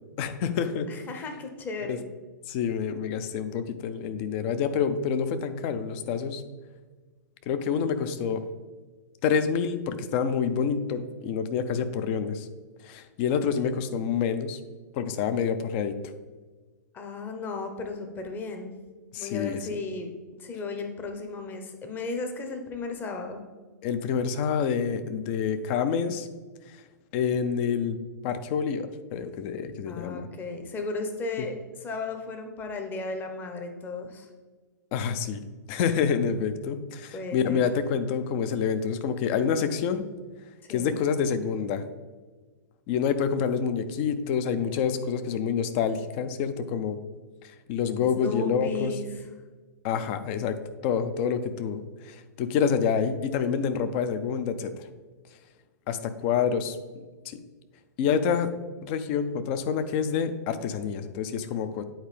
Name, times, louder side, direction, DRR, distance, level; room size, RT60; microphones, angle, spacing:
voice 1, 0.2-0.9 1.8-2.0 2.5-6.4 7.5-8.4 9.2-12.5 12.8-14.6 14.9-16.0 19.1-19.8 23.8-26.3 27.1-28.0 28.2-30.3 34.9-35.4 35.7-40.0 40.7-41.8 42.9-47.0 47.4-48.9 49.8-50.6 50.8-54.7 55.9-56.8 57.3-57.4 58.0-58.5 58.8-61.8, left 7 dB, 40° left, 11 dB, 0.6 m, -27 dB
voice 2, 0.9-2.0 16.9-18.7 19.2-20.1 20.4-23.4 29.9-31.6 31.8-34.3 37.1-37.6 40.7-41.0 48.0-49.2, left 3 dB, 20° left, 5 dB, 0.9 m, -35 dB
8.9 x 4.6 x 3.3 m, 1.4 s
figure-of-eight pair, 110°, 10 cm